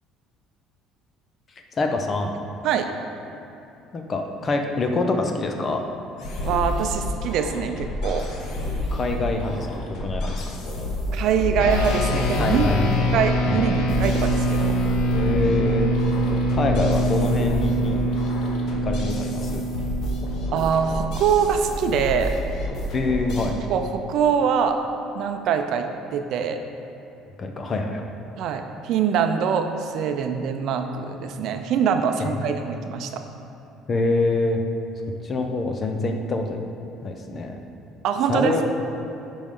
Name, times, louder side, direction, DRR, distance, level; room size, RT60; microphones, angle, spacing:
voice 1, 1.7-2.3 3.9-5.8 8.9-9.7 10.0-10.4 12.4-12.9 13.5-13.7 15.1-15.9 16.5-18.0 18.8-19.6 22.9-23.5 27.4-28.0 32.2-32.5 33.9-34.6 35.2-36.6 37.0-37.6 38.3-38.6, left 2 dB, 30° left, 4 dB, 0.7 m, -25 dB
sound 1, 6.2-23.5, left 1 dB, 60° left, 1.2 m, -30 dB
voice 2, 6.4-8.3 11.1-12.7 13.1-14.8 20.5-22.4 23.7-24.8 25.1-25.9 26.1-26.6 28.4-33.2 38.0-38.6, right 7 dB, 65° right, 6 dB, 0.6 m, -23 dB
sound 2, 11.0-17.3, left 1 dB, 15° right, 0.7 m, -31 dB
sound 3, 11.6-21.2, right 1 dB, 80° left, 0.7 m, -25 dB
9.9 x 5.3 x 3.8 m, 2.9 s
cardioid pair, 120°, 0 cm